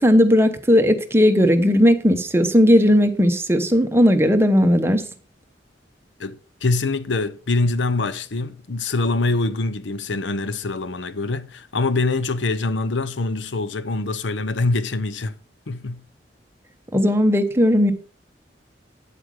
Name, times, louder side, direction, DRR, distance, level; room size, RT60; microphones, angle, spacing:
voice 1, 0.0-5.0 16.9-17.9, equal, 15° right, 1.0 m, -16 dB
voice 2, 6.2-15.4 15.7-16.0, left 3 dB, 85° left, 0.8 m, -24 dB
9.4 x 8.0 x 5.0 m
head